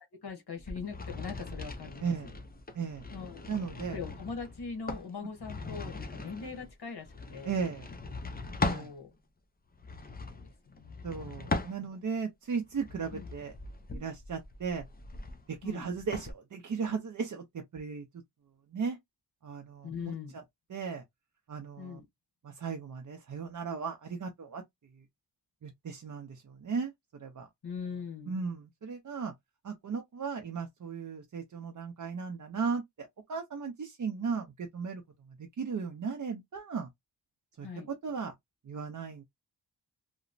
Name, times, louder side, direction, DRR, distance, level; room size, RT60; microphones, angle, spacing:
voice 1, 0.1-2.3 3.1-3.5 3.9-7.5 8.7-9.1 10.2-11.1 13.1-13.3 15.6-15.9 19.8-20.4 21.8-22.0 27.6-28.4 37.6-37.9, left 5 dB, 65° left, 1.1 m, -41 dB
sound 1, 0.6-8.9 9.7-12.2 12.7-16.3, left 3 dB, 20° left, 0.5 m, -39 dB
voice 2, 3.5-4.0 7.4-7.9 8.6-8.9 11.0-13.5 13.9-14.8 15.5-17.4 17.7-18.0 18.7-19.0 19.4-19.9 20.7-21.0 21.5-22.0 22.4-24.6 25.6-26.9 27.2-27.5 28.3-29.3 29.6-35.0 35.4-36.9 37.6-38.3 38.7-39.2, right 5 dB, 45° right, 0.5 m, -36 dB
2.9 x 2.0 x 2.5 m
wide cardioid pair, 80°, 42 cm